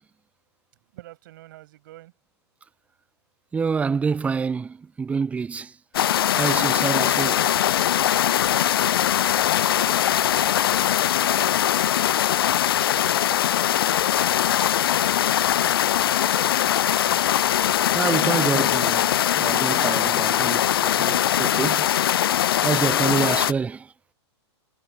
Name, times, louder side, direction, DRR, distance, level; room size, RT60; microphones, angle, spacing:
voice 1, 0.9-2.1 8.8-11.7 12.5-15.7 16.0-16.7, right 16 dB, 50° right, 6.4 m, -49 dB
voice 2, 3.5-5.7 6.4-7.5 17.9-19.1 19.3-21.9 22.6-23.8, right 5 dB, 10° right, 0.5 m, -27 dB
sound 1, 5.9-23.5, left 11 dB, 55° left, 0.8 m, -21 dB
figure-of-eight pair, 105°, 14 cm